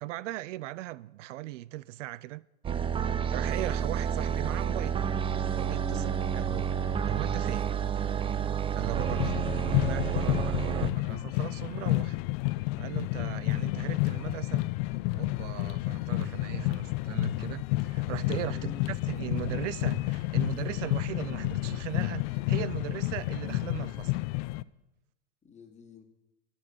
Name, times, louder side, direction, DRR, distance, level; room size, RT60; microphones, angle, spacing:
voice 1, 0.0-2.4 3.3-6.7 7.0-7.7 8.7-12.2 12.8-14.7 15.1-24.1, right 16 dB, 75° right, 0.5 m, -38 dB
sound 1, 2.6-10.9, right 8 dB, 15° right, 0.4 m, -30 dB
voice 2, 5.8-6.4 9.0-9.4 18.5-18.9 25.4-26.0, left 5 dB, 20° left, 2.3 m, -47 dB
sound 2, 9.0-24.6, left 21 dB, 55° left, 0.5 m, -30 dB
13.0 x 7.1 x 9.5 m
hypercardioid pair, 100°, 37 cm